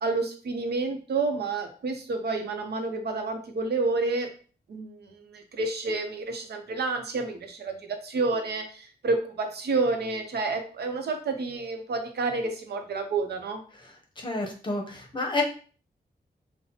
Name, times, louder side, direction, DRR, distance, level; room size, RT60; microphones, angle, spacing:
voice 1, 0.0-4.3 4.7-13.6, right 3 dB, 85° right, 4 dB, 0.7 m, -29 dB
voice 2, 14.2-15.4, left 2 dB, 30° left, 1 dB, 0.8 m, -29 dB
5.6 x 2.1 x 2.8 m, 0.40 s
wide cardioid pair, 160°, 17 cm